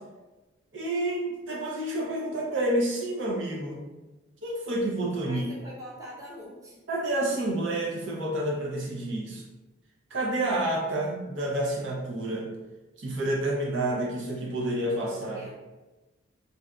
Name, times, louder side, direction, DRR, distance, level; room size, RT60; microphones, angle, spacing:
voice 1, 0.7-3.8 4.4-5.4 6.9-9.4 10.1-12.5 13.0-15.4, right 1 dB, 65° right, -3 dB, 0.7 m, -29 dB
voice 2, 5.3-6.8 15.3-15.5, equal, 15° right, -6 dB, 0.7 m, -43 dB
2.6 x 2.2 x 3.7 m, 1.1 s
head